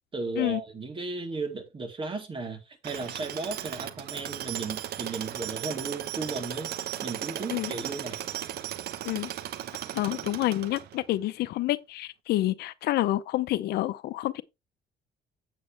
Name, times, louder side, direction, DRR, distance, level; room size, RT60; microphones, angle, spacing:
voice 1, 0.1-6.7 7.0-8.2, right 3 dB, 30° right, 3.4 m, -35 dB
Tools, 2.8-11.1, right 11 dB, 70° right, 1.0 m, -36 dB
voice 2, 9.9-14.4, left 15 dB, 75° left, 0.7 m, -28 dB
8.6 x 8.3 x 3.3 m
cardioid pair, 110°, 17 cm